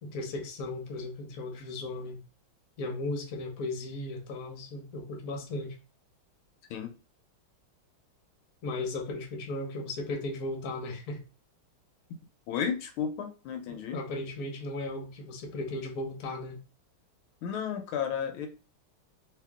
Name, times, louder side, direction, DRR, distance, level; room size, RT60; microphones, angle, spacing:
voice 1, 0.0-2.2 2.8-5.7 8.6-11.2 13.9-16.6, left 2 dB, 55° left, 2 dB, 1.2 m, -36 dB
voice 2, 12.5-14.0 17.4-18.5, left 7 dB, 80° left, 5 dB, 1.5 m, -33 dB
3.1 x 2.8 x 3.5 m, 0.32 s
omnidirectional pair, 2.4 m